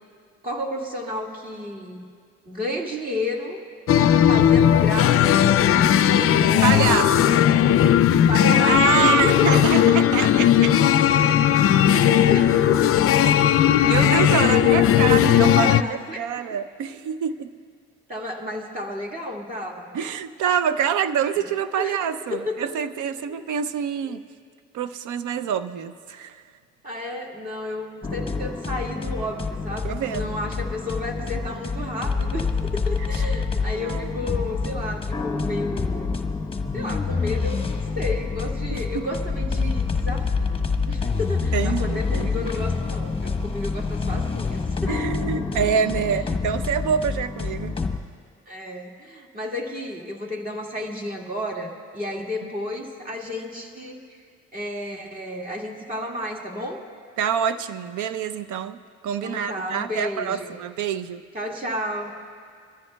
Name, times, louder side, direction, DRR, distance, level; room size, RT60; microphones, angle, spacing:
voice 1, 0.4-2.0 2.5-3.6 4.2-6.9 7.4-7.6 8.3-10.2 11.1-11.6 11.8-13.6 13.9-16.4 18.1-20.0 21.8-22.9 26.8-36.2 36.7-45.1 48.5-54.0 54.5-56.8 59.2-60.6 61.3-62.1, left 1 dB, 30° right, -1 dB, 2.0 m, -32 dB
sound 1, 3.9-15.8, left 10 dB, 50° left, 0.4 m, -17 dB
voice 2, 6.6-7.3 8.7-10.8 13.2-13.3 13.8-17.5 19.9-24.2 24.7-26.4 29.8-30.4 33.7-34.1 38.7-39.1 41.5-42.5 44.9-47.7 57.2-58.8 59.0-61.2, right 8 dB, 80° right, 12 dB, 0.6 m, -26 dB
sound 2, 28.0-48.0, left 4 dB, 20° left, 1.0 m, -27 dB
23.5 x 13.5 x 2.3 m, 2.1 s
cardioid pair, 90°, 30 cm